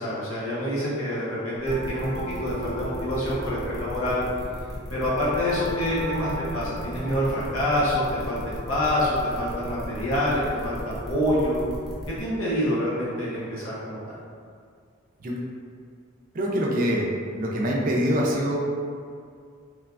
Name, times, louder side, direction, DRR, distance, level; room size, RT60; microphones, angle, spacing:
voice 1, 0.0-4.2 4.9-11.6 12.2-14.1, left 1 dB, 90° left, -7 dB, 0.7 m, -26 dB
sound 1, 1.6-12.1, right 1 dB, 45° left, 0.7 m, -39 dB
sound 2, 1.7-12.2, equal, ahead, 0.6 m, -38 dB
voice 2, 16.3-17.1 17.4-18.6, equal, 45° right, -3 dB, 0.4 m, -24 dB
3.1 x 2.1 x 2.3 m, 2.2 s
head